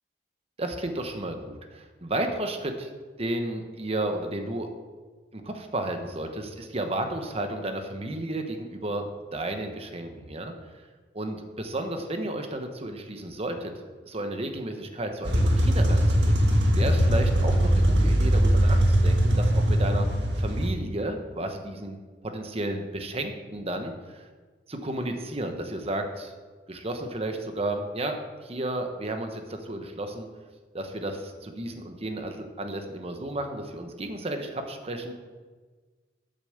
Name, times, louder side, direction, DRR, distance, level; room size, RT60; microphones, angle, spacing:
voice 1, 0.6-2.9 3.2-4.7 5.3-10.5 11.1-13.7 14.1-16.4 16.7-20.1 20.4-22.0 22.2-24.3 24.7-26.3 26.7-30.3 30.7-35.1, right 1 dB, 35° right, 5 dB, 1.1 m, -32 dB
sound 1, 15.2-20.7, equal, 75° right, 1.6 m, -21 dB
8.2 x 6.9 x 6.7 m, 1.4 s
head